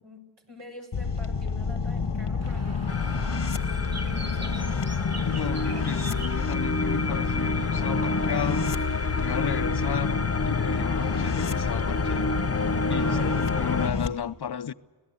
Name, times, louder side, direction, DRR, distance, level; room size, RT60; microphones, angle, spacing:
voice 1, 0.0-4.9 12.9-13.7, equal, 85° right, 6.1 m, -46 dB
sound 1, 0.9-14.1, left 5 dB, 85° left, 1.3 m, -28 dB
Bird, 2.4-9.6, right 3 dB, 40° right, 1.0 m, -44 dB
sound 2, 2.9-13.9, left 1 dB, 35° left, 0.9 m, -31 dB
voice 2, 5.2-12.3 12.9-14.7, left 8 dB, 70° left, 0.7 m, -34 dB
25.5 x 17.0 x 8.3 m
cardioid pair, 40°, 41 cm